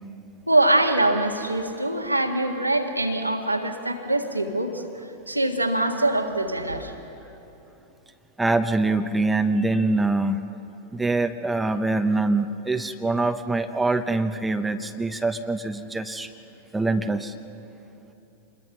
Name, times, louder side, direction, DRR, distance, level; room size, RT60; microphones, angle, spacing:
voice 1, 0.5-4.8 5.3-6.9, right 1 dB, 85° right, 3 dB, 1.8 m, -23 dB
voice 2, 8.4-10.4 10.9-16.3 16.7-17.3, right 2 dB, 5° right, 8 dB, 0.9 m, -24 dB
27.5 x 21.5 x 6.1 m, 3.0 s
figure-of-eight pair, 90°, 0 cm